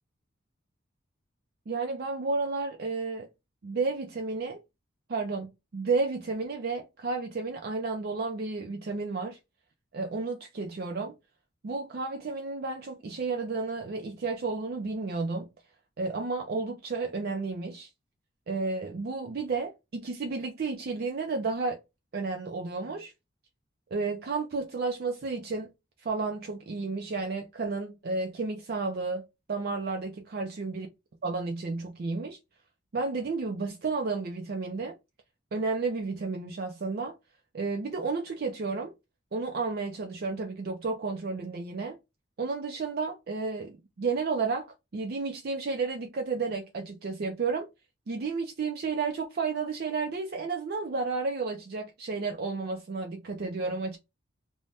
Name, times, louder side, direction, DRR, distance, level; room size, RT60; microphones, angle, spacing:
voice 1, 1.7-3.3 3.6-4.6 5.1-9.4 9.9-11.2 11.6-15.5 16.0-17.9 18.5-21.8 22.1-23.1 23.9-25.7 26.0-30.9 31.2-32.4 32.9-35.0 35.5-37.2 37.5-38.9 39.3-42.0 42.4-44.7 44.9-47.7 48.1-54.0, right 4 dB, 50° right, 0.4 m, -32 dB
2.6 x 2.1 x 3.3 m
head